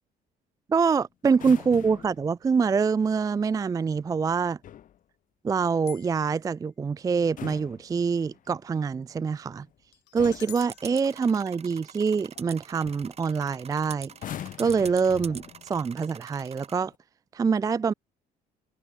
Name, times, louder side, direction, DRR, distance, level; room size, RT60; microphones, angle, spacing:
voice 1, 0.7-4.6 5.4-9.7 10.1-14.1 14.6-16.9 17.3-17.9, right 5 dB, 20° right, 0.4 m, -25 dB
sound 1, 1.3-2.3 4.4-5.0 7.1-8.5 9.5-9.8 10.2-10.7 12.4-12.5 12.8-13.2 14.1-15.8 16.7-17.0, left 11 dB, 50° left, 1.0 m, -42 dB
sound 2, 5.9-6.5 9.9-12.2, left 20 dB, 90° left, 1.8 m, -49 dB
sound 3, 10.6-16.8, right 7 dB, 40° right, 2.3 m, -45 dB
cardioid pair, 110°, 17 cm